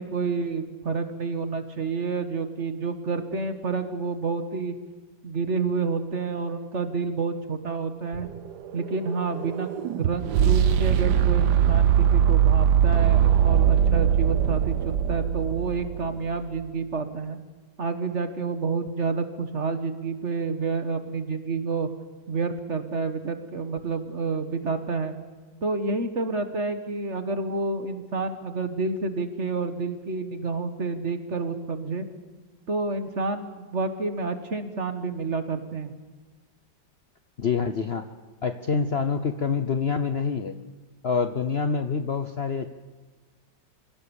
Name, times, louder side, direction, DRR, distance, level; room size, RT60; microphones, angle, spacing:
voice 1, 0.0-4.8 5.2-8.3 8.7-17.4 17.8-21.9 22.3-25.1 25.6-32.1 32.7-35.9, right 4 dB, 40° right, 8 dB, 1.7 m, -29 dB
sound 1, 8.1-16.2, right 9 dB, 70° right, 1.4 m, -21 dB
voice 2, 37.4-38.1 38.4-40.5 41.0-42.7, left 5 dB, 45° left, 8 dB, 0.8 m, -26 dB
26.5 x 16.5 x 7.1 m, 1.3 s
omnidirectional pair, 1.9 m